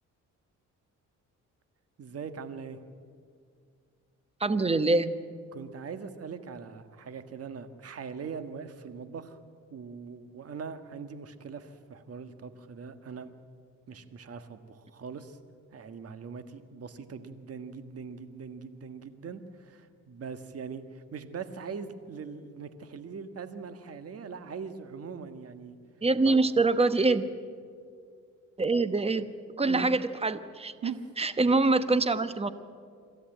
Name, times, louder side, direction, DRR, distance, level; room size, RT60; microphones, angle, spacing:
voice 1, 2.0-2.8 5.5-9.4 9.7-13.3 13.9-15.4 15.7-25.8 26.3-26.4 29.7-29.9 30.8-31.1, right 5 dB, 50° right, 10 dB, 1.6 m, -41 dB
voice 2, 4.4-5.1 26.0-27.3 28.6-29.3 29.6-30.7 31.2-32.5, right 3 dB, 20° right, 13 dB, 1.1 m, -24 dB
26.5 x 13.0 x 9.1 m, 2.2 s
cardioid pair, 90°, 30 cm